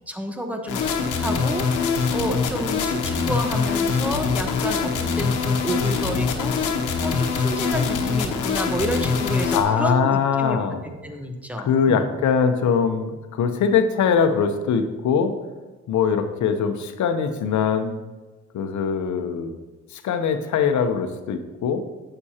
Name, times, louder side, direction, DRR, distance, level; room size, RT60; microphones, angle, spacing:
voice 1, 0.1-1.7 2.1-6.6 7.0-10.6 11.0-12.1, right 1 dB, 5° right, 4 dB, 1.1 m, -30 dB
sound 1, 0.7-9.6, left 5 dB, 90° left, 1.1 m, -23 dB
voice 2, 9.5-10.8 11.6-15.3 15.9-17.9 18.5-19.5 19.9-21.8, left 6 dB, 70° left, 8 dB, 0.9 m, -22 dB
9.5 x 7.7 x 2.9 m, 1.2 s
cardioid pair, 90°, 30 cm